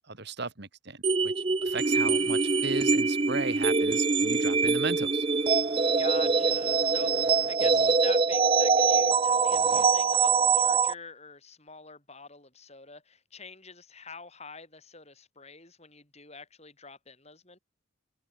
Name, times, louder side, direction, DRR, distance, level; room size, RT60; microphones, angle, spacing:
voice 1, 0.0-5.3, right 3 dB, 50° right, 2.0 m, -36 dB
sound 1, 1.0-10.9, right 4 dB, 25° right, 0.6 m, -24 dB
sound 2, 1.7-7.6, left 3 dB, 50° left, 5.0 m, -53 dB
voice 2, 6.0-17.6, left 4 dB, 30° left, 6.4 m, -46 dB
head